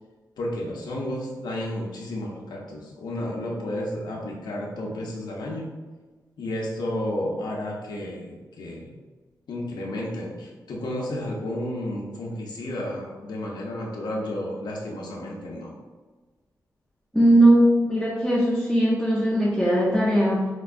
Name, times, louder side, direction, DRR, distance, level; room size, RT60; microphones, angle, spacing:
voice 1, 0.4-5.7 6.4-8.9 9.5-15.7, left 1 dB, 85° left, -2 dB, 0.5 m, -32 dB
voice 2, 17.1-20.5, right 1 dB, ahead, -5 dB, 0.5 m, -19 dB
4.3 x 2.2 x 2.4 m, 1.3 s
wide cardioid pair, 95°, 7 cm